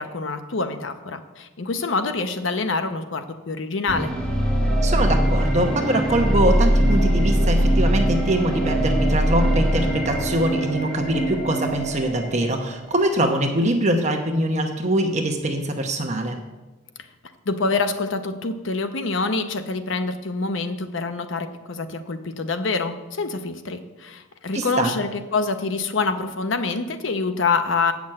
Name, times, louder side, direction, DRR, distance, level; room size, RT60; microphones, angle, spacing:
voice 1, 0.0-4.1 17.5-27.9, left 4 dB, 70° left, 8 dB, 0.8 m, -26 dB
sound 1, 3.9-12.9, right 1 dB, 5° left, 1.9 m, -21 dB
voice 2, 4.8-16.4 24.5-24.9, right 1 dB, 35° right, 4 dB, 0.9 m, -23 dB
8.8 x 6.1 x 7.7 m, 1.1 s
head